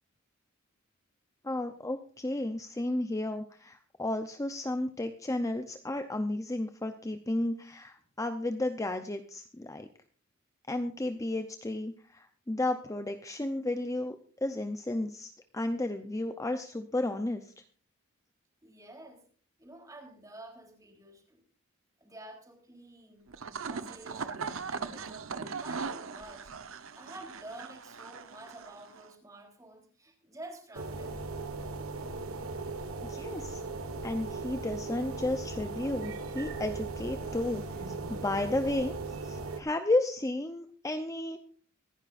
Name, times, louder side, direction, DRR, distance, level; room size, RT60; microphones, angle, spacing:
voice 1, 1.4-9.9 10.7-17.5 33.1-33.6 34.0-38.9 39.2-41.4, left 1 dB, 15° left, 7 dB, 0.6 m, -33 dB
voice 2, 18.6-19.2 19.6-21.4 22.0-23.3 23.7-25.2 25.6-26.5 26.9-31.2, right 2 dB, 15° right, 1 dB, 3.6 m, -49 dB
sound 1, 23.3-29.1, right 5 dB, 70° right, 0.9 m, -39 dB
sound 2, 30.7-39.6, right 3 dB, 90° right, 1.5 m, -38 dB
24.5 x 11.0 x 2.5 m, 0.43 s
head